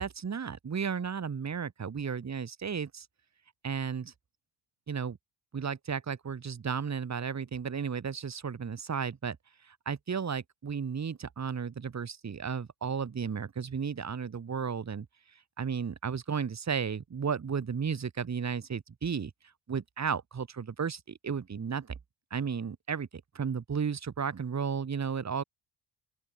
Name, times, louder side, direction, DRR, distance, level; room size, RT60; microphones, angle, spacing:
voice 1, 0.0-3.1 3.6-4.1 4.9-5.2 5.5-9.4 9.6-15.1 15.6-19.3 19.7-21.9 22.3-23.1 23.3-25.4, right 6 dB, 35° right, 2.9 m, -34 dB
open air
cardioid pair, 140°, 49 cm